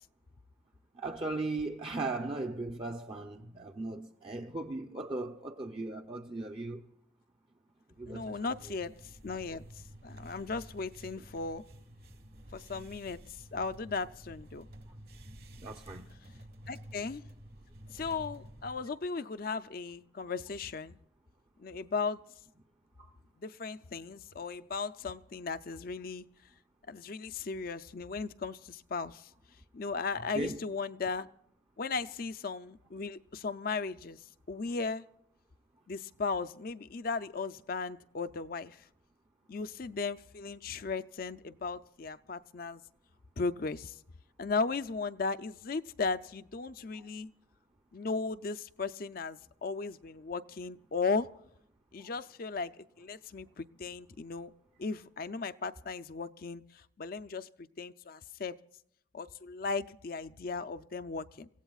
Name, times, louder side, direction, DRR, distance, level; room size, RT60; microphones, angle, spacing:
voice 1, 1.0-6.8 8.0-8.5 15.6-16.1 30.3-30.6 46.9-47.1 52.0-52.1, right 2 dB, 25° right, 0.6 m, -37 dB
voice 2, 8.1-11.6 12.5-13.2 13.5-14.7 16.7-17.2 17.9-21.0 21.6-22.2 23.4-26.3 26.9-29.3 29.7-31.3 31.8-34.2 34.5-35.0 35.9-38.8 39.5-42.8 43.4-44.0 44.4-47.3 47.9-51.3 51.9-54.5 54.8-57.5 57.8-58.6 59.1-61.5, left 4 dB, 45° left, 0.5 m, -36 dB
sound 1, 8.5-18.9, right 1 dB, 50° right, 1.5 m, -51 dB
28.5 x 16.0 x 2.4 m
head